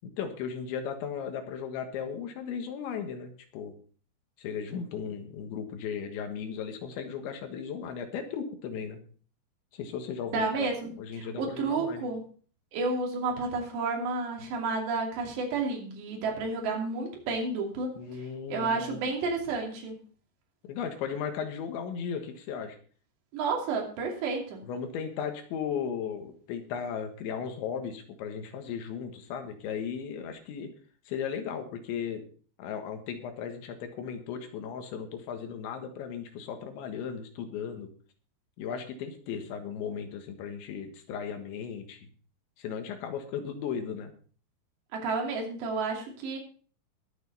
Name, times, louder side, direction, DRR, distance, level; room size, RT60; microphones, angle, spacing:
voice 1, 0.0-3.7 4.4-9.0 9.7-10.7 11.0-12.1 18.0-19.0 20.6-22.8 24.6-30.7 31.1-32.2 32.6-37.9 38.6-42.1 42.6-44.1, left 7 dB, 90° left, 6 dB, 3.9 m, -36 dB
voice 2, 10.3-10.9 11.4-12.2 12.7-17.9 18.5-20.0 23.3-24.6 44.9-46.4, right 3 dB, 75° right, 0 dB, 4.8 m, -31 dB
20.5 x 7.1 x 4.1 m, 0.42 s
omnidirectional pair, 5.1 m